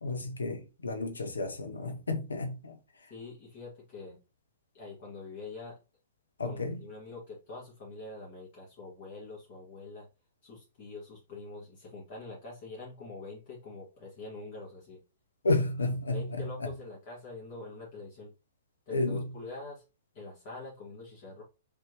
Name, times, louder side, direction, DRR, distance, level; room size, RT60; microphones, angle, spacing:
voice 1, 0.0-2.8 6.4-6.8 15.4-16.8 18.9-19.4, left 2 dB, 80° left, 0.7 m, -32 dB
voice 2, 3.1-4.2 4.7-5.8 6.4-10.1 10.4-15.0 16.1-18.3 18.9-19.8 20.1-21.4, left 3 dB, 45° left, 2.0 m, -45 dB
4.2 x 3.7 x 2.9 m
hypercardioid pair, 115°, 0 cm